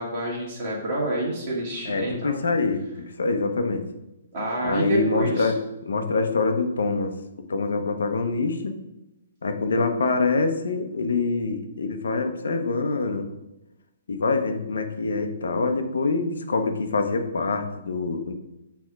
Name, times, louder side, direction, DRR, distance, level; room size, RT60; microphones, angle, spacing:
voice 1, 0.0-2.4 4.3-5.5, right 1 dB, 35° right, -5 dB, 1.8 m, -28 dB
voice 2, 1.8-3.8 4.6-5.6 5.8-7.1 7.5-8.8 9.4-13.3 14.1-18.3, left 3 dB, 90° left, 7 dB, 0.8 m, -25 dB
6.6 x 3.5 x 4.7 m, 0.95 s
hypercardioid pair, 165°, 0 cm